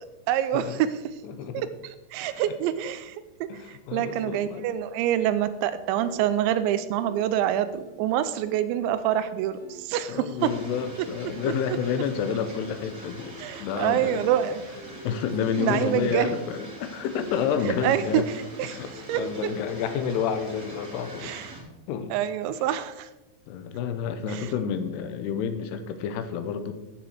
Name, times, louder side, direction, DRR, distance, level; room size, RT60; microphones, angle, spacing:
voice 1, 0.0-1.1 1.5-1.7 2.1-10.5 11.4-11.5 13.4-14.6 15.6-16.4 17.8-18.2 18.6-18.8 19.1-19.2 21.2-21.5 22.1-23.1 24.3-24.5, right 11 dB, 85° right, 12 dB, 2.8 m, -26 dB
voice 2, 1.2-1.7 2.3-2.6 3.5-4.7 10.1-14.3 15.0-18.3 18.6-21.4 21.9-22.1 22.5-22.6 23.5-26.7, left 7 dB, 75° left, 9 dB, 2.7 m, -30 dB
sound 1, 5.8-19.4, equal, 40° left, 1.6 m, -47 dB
sound 2, 10.4-21.6, right 2 dB, 30° right, 1.8 m, -44 dB
14.5 x 6.8 x 4.9 m, 1.0 s
omnidirectional pair, 5.2 m